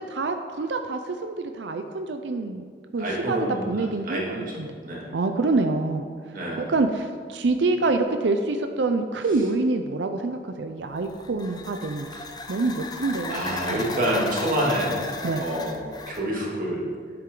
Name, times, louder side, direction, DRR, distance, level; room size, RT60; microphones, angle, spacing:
voice 1, 0.0-2.6 2.9-4.2 4.6-4.7 5.1-6.0 6.7-13.9 15.2-15.5, right 3 dB, 80° right, 6 dB, 0.5 m, -26 dB
voice 2, 3.0-4.5 4.8-5.1 6.3-6.7 13.3-15.1 15.4-16.8, right 1 dB, 50° right, -3 dB, 2.3 m, -27 dB
sound 1, 11.0-16.3, left 3 dB, 25° left, 0.7 m, -35 dB
10.5 x 7.8 x 3.8 m, 2.1 s
head